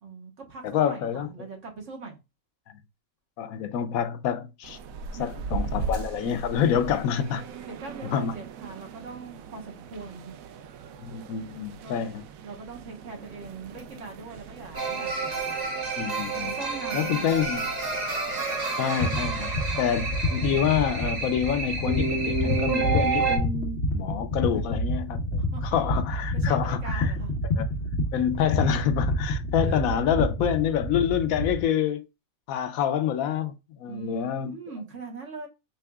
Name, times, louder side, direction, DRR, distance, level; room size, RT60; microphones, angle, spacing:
voice 1, 0.0-2.2 5.2-5.3 5.8-5.9 6.7-7.2 7.7-10.3 11.8-12.0 12.4-15.6 16.4-17.3 19.7-19.9 24.7-24.8 25.5-25.8 26.3-27.4 27.7-27.8 29.6-29.8 30.4-30.6 33.8-35.5, right 4 dB, 60° right, 1.6 m, -41 dB
voice 2, 0.7-1.3 3.4-4.8 5.2-7.4 8.1-8.3 11.0-12.2 16.0-16.5 16.9-17.7 18.8-27.1 27.6-27.7 28.1-32.0 32.5-33.5 33.8-34.6, left 9 dB, 80° left, 1.1 m, -27 dB
sound 1, 4.6-19.3, right 5 dB, 80° right, 1.0 m, -40 dB
sound 2, 14.7-23.4, right 4 dB, 35° right, 1.0 m, -29 dB
sound 3, 19.0-31.6, left 1 dB, 50° left, 1.5 m, -28 dB
5.7 x 3.4 x 2.3 m
omnidirectional pair, 1.5 m